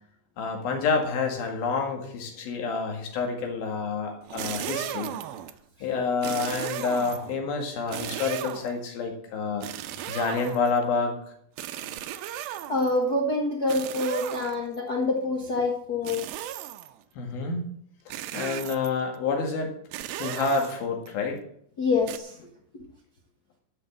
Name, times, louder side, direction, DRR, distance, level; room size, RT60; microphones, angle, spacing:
voice 1, 0.4-5.2 5.8-9.7 10.1-11.2 17.2-17.8 18.3-19.7 20.2-21.4, left 4 dB, 80° left, 2 dB, 3.9 m, -28 dB
sound 1, 4.2-5.6 6.2-7.4 7.9-8.8 9.6-10.8 11.6-13.0 13.7-14.8 16.1-17.0 18.1-19.0 19.9-21.1 22.1-22.2, right 12 dB, 90° right, 2.6 m, -36 dB
voice 2, 12.7-16.2 21.8-22.8, left 2 dB, 60° left, 0 dB, 1.0 m, -26 dB
11.5 x 6.7 x 7.7 m, 0.70 s
omnidirectional pair, 4.2 m